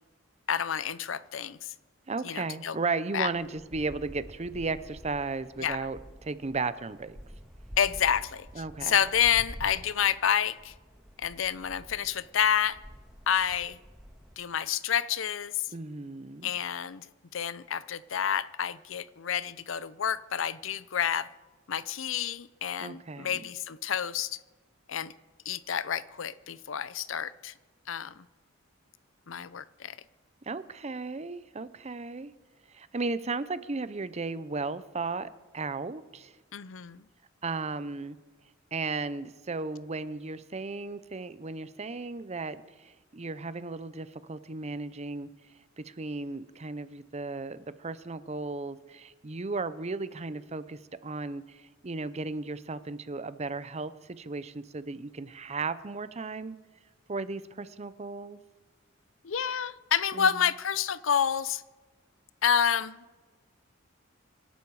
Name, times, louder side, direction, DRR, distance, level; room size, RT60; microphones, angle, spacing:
voice 1, 0.5-1.6 2.2-2.8 3.1-3.3 5.6-5.8 7.8-8.5 8.8-10.7 11.2-12.8 13.3-13.8 14.4-15.5 16.4-17.1 17.3-21.3 21.7-24.4 24.9-25.1 25.5-27.5 27.9-28.1 29.3-29.9 36.5-37.0 59.2-61.6 62.4-63.0, left 8 dB, 65° left, 17 dB, 0.6 m, -29 dB
voice 2, 2.1-7.2 8.5-9.0 15.7-16.5 22.8-23.5 30.5-32.3 32.7-36.3 37.4-38.2 38.7-45.3 45.8-56.6 57.1-58.4 60.1-60.5, right 3 dB, 35° right, 14 dB, 0.7 m, -35 dB
sound 1, 3.3-14.4, equal, ahead, 1.7 m, -48 dB
26.0 x 11.5 x 4.8 m, 1.3 s
head